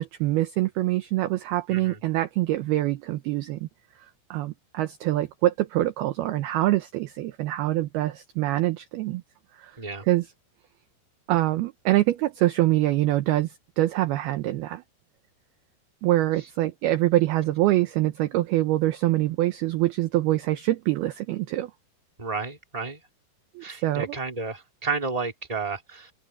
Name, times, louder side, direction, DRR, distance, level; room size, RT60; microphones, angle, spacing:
voice 1, 0.0-3.7 4.3-9.2 9.6-9.7 10.0-10.3 11.3-14.8 16.0-21.7 23.6-24.2, right 16 dB, 80° right, 2.2 m, -25 dB
voice 2, 22.2-23.0 23.6-26.1, right 4 dB, 10° right, 2.9 m, -32 dB
open air
omnidirectional pair, 5.6 m